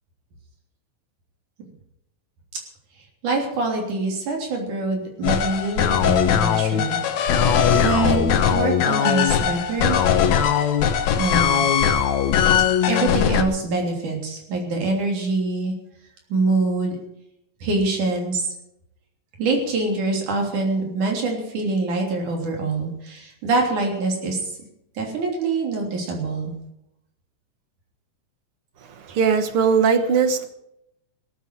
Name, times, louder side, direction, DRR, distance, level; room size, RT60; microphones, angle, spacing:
voice 1, 3.2-7.0 7.7-10.0 11.2-11.7 12.9-15.7 16.3-16.9 17.6-18.5 19.4-24.4 25.0-26.5, right 3 dB, 80° right, 1 dB, 4.8 m, -24 dB
sound 1, 5.2-13.4, left 8 dB, 70° left, 2.3 m, -20 dB
voice 2, 28.8-30.5, right 6 dB, 55° right, 9 dB, 1.9 m, -20 dB
17.5 x 14.5 x 4.7 m, 0.80 s
omnidirectional pair, 3.5 m